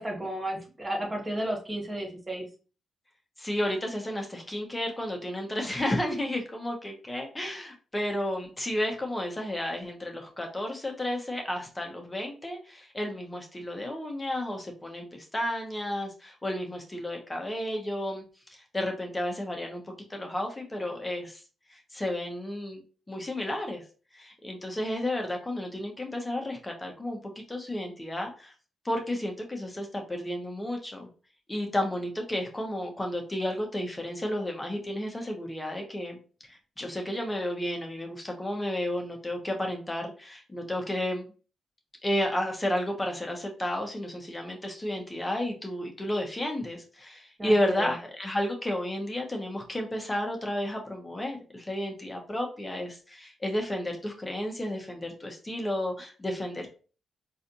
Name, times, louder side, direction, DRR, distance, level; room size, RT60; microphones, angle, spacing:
voice 1, 0.0-2.4 47.4-47.9, right 1 dB, 25° right, 0 dB, 1.6 m, -33 dB
voice 2, 3.4-18.2 18.5-19.8 20.1-21.4 21.7-22.8 23.1-23.8 24.1-27.2 27.5-28.5 28.8-31.1 31.5-36.2 36.5-41.3 42.0-56.7, left 1 dB, 20° left, 2 dB, 1.3 m, -32 dB
4.0 x 2.8 x 2.7 m, 0.36 s
hypercardioid pair, 40°, 0 cm